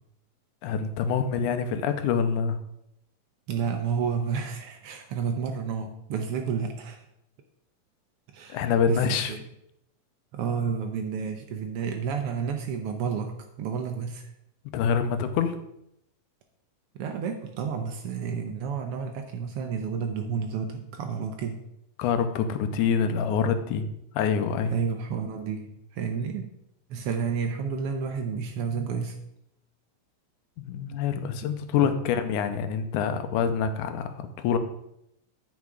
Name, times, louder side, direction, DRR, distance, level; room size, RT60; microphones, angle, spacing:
voice 1, 0.6-2.6 8.5-9.3 14.7-15.6 22.0-23.9 24.1-24.7 30.6-34.6, left 7 dB, 90° left, 8 dB, 2.2 m, -26 dB
voice 2, 3.5-7.0 8.3-9.4 10.3-14.3 17.0-21.6 24.7-26.5 26.9-29.2 31.8-31.9, right 6 dB, 85° right, 5 dB, 1.3 m, -31 dB
9.3 x 5.2 x 4.7 m, 0.80 s
omnidirectional pair, 3.5 m